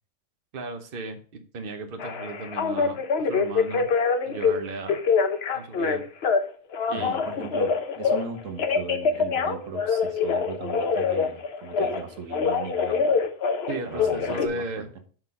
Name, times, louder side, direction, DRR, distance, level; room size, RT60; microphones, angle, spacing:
voice 1, 0.5-3.9 4.2-5.0 5.5-6.0 6.9-7.2 13.7-14.9, right 3 dB, 50° right, 6 dB, 1.0 m, -35 dB
Telephone, 2.0-4.5 4.9-6.4 6.7-8.2 8.6-12.0 12.3-14.5, left 5 dB, 55° left, 1.0 m, -24 dB
voice 2, 6.9-13.3 13.8-14.9, right 5 dB, 85° right, 6 dB, 1.4 m, -38 dB
5.9 x 4.6 x 5.6 m, 0.42 s
omnidirectional pair, 1.3 m